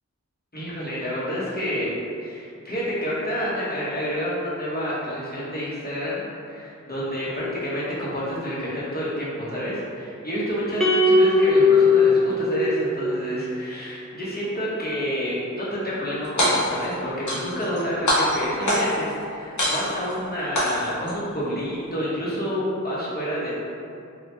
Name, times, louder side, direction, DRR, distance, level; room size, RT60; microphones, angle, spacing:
voice 1, 0.5-1.9 2.2-23.6, equal, 30° left, -8 dB, 1.0 m, -29 dB
sound 1, 10.8-13.3, left 3 dB, ahead, 0.4 m, -18 dB
sound 2, 16.2-16.9 17.3-17.8 18.1-19.1 19.6-20.1 20.6-21.1, equal, 70° left, 0.8 m, -23 dB
2.8 x 2.3 x 3.2 m, 2.5 s
wide cardioid pair, 45°, 31 cm